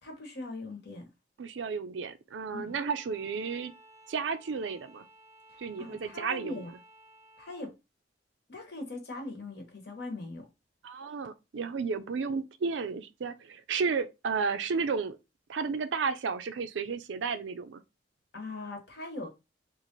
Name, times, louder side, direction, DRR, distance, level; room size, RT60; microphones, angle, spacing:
voice 1, 0.0-1.0 2.5-2.7 5.5-6.7 7.4-7.7 8.5-10.5 18.3-19.3, left 2 dB, 60° left, 1.1 m, -40 dB
voice 2, 1.4-3.7 4.1-5.0 5.6-6.6 10.8-15.2 15.5-17.8, right 5 dB, 85° right, 0.4 m, -32 dB
Bowed string instrument, 2.7-7.7, right 1 dB, 15° right, 0.7 m, -56 dB
3.0 x 2.5 x 3.8 m
head